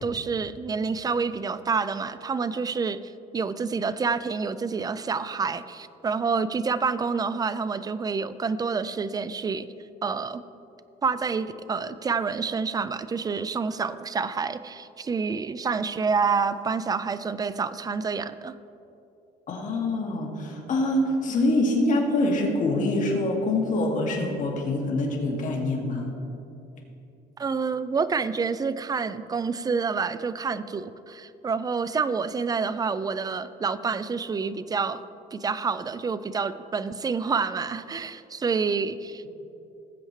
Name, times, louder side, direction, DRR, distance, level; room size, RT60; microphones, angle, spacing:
voice 1, 0.0-3.0 3.3-9.7 10.0-10.4 11.0-18.5 27.4-35.0 35.3-39.3, right 5 dB, 20° right, 14 dB, 0.4 m, -28 dB
voice 2, 19.5-26.1, left 2 dB, 50° left, -1 dB, 2.2 m, -25 dB
19.0 x 7.8 x 3.2 m, 2.9 s
cardioid pair, 110°, 17 cm